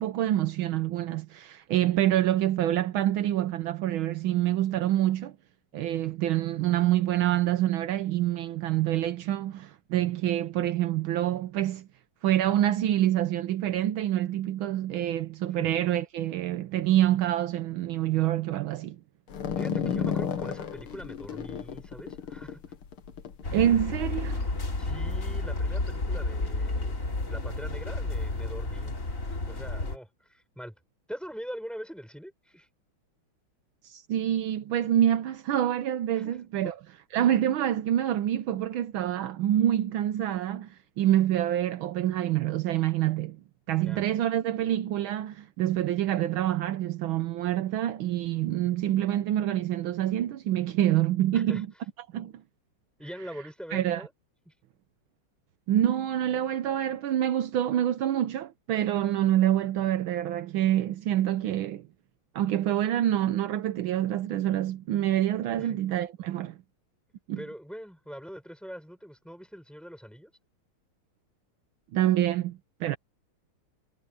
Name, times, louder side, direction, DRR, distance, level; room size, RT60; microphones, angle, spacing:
voice 1, 0.0-5.4 5.7-11.9 12.2-19.0 23.5-24.5 33.8-36.7 37.1-43.4 43.7-51.7 52.1-52.3 53.7-54.0 55.7-61.9 62.3-66.6 67.3-67.4 71.9-73.0, right 12 dB, 75° right, 1.5 m, -26 dB
sound 1, 19.3-24.0, left 7 dB, 85° left, 2.4 m, -33 dB
voice 2, 19.6-22.6 24.8-27.0 27.3-28.9 29.3-30.8 31.1-32.7 36.1-36.4 36.6-36.7 43.8-44.0 51.3-51.6 53.0-54.1 54.5-54.6 65.6-65.8 67.4-70.3, equal, ahead, 7.3 m, -42 dB
sound 2, 23.4-30.0, left 2 dB, 40° left, 3.3 m, -31 dB
omnidirectional pair, 2.3 m